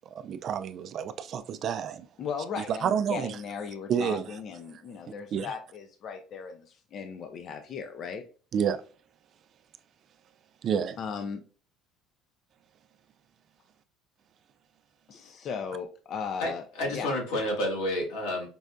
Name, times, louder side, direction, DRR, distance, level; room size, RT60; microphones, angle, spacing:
voice 1, 0.1-2.1 2.6-3.4 3.9-4.3 5.3-5.5 8.5-8.8 10.6-11.0, right 8 dB, 45° right, 0.3 m, -29 dB
voice 2, 2.2-8.2 11.0-11.4 15.1-16.6 16.9-17.1, left 6 dB, 45° left, 0.5 m, -37 dB
voice 3, 16.4-18.5, left 1 dB, 90° left, 1.7 m, -30 dB
5.3 x 2.4 x 2.2 m
cardioid pair, 125°, 0 cm